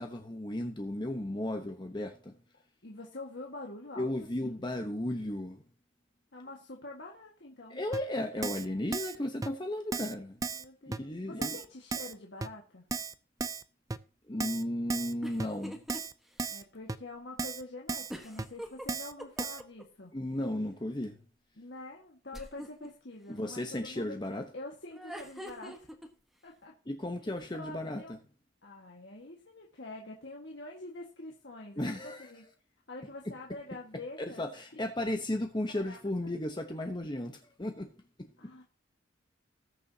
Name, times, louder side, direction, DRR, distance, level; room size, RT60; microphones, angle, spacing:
voice 1, 0.0-2.4 4.0-5.6 7.7-10.4 10.8-11.6 14.3-15.8 20.1-21.2 23.3-24.4 26.9-28.0 31.8-32.3 34.2-37.9 38.2-38.3, left 1 dB, 25° left, 4 dB, 0.9 m, -35 dB
voice 2, 2.8-4.1 4.4-4.6 6.3-7.8 10.5-12.9 16.5-20.1 21.6-24.2 24.5-25.9 26.4-26.7 27.2-27.3 27.6-28.2 28.6-32.5 32.9-34.5 35.7-36.3 38.4-38.6, left 2 dB, 60° left, -1 dB, 1.7 m, -46 dB
Keyboard (musical), 7.9-8.0 8.4-8.7 8.9-9.2 9.4-9.5 9.9-10.1 10.4-10.6 10.9-11.0 11.4-11.6 11.9-12.1 12.4-12.5 12.9-13.1 13.4-13.6 13.9-14.0 14.4-14.6 14.9-15.1 15.4-15.5 15.9-16.1 16.4-16.6 16.9-17.0 17.4-17.6 17.9-18.1 18.4-18.5 18.9-19.1 19.4-19.6, right 4 dB, 20° right, 0.4 m, -35 dB
sound 1, 15.2-16.0 16.4-16.5 18.1-19.8 22.3-22.9 24.9-26.1, equal, ahead, 1.2 m, -43 dB
19.5 x 7.0 x 2.8 m, 0.37 s
head